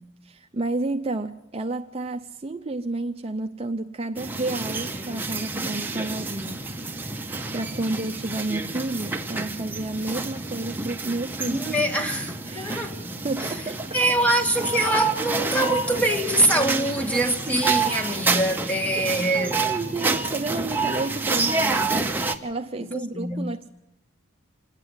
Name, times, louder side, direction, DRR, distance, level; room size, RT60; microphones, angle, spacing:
voice 1, 0.0-6.7 7.5-12.0 12.5-12.9 13.2-14.2 15.7-15.8 16.8-16.9 17.5-17.8 18.6-19.1 19.3-23.7, right 2 dB, 30° right, 0.6 m, -31 dB
sound 1, 4.2-22.4, right 3 dB, 10° right, 1.0 m, -28 dB
voice 2, 11.4-13.0 13.9-19.6 22.9-23.5, right 1 dB, 5° left, 1.8 m, -24 dB
27.5 x 9.8 x 9.8 m
head